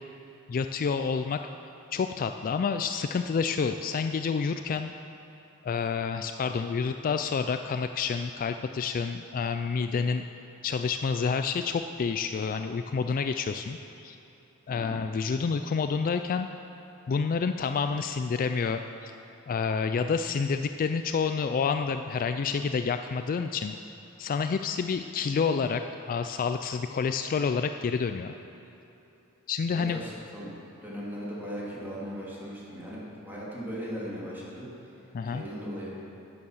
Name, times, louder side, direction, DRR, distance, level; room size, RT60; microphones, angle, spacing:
voice 1, 0.5-1.4 1.9-4.9 5.6-10.2 10.6-14.2 14.7-16.5 17.1-19.1 19.5-23.8 24.2-25.8 26.1-28.3 29.5-30.0 35.1-35.4, left 5 dB, 40° left, 8 dB, 0.3 m, -29 dB
voice 2, 29.7-30.5 30.8-34.7 35.2-35.9, equal, 10° right, -7 dB, 2.9 m, -38 dB
11.0 x 9.4 x 6.5 m, 3.0 s
head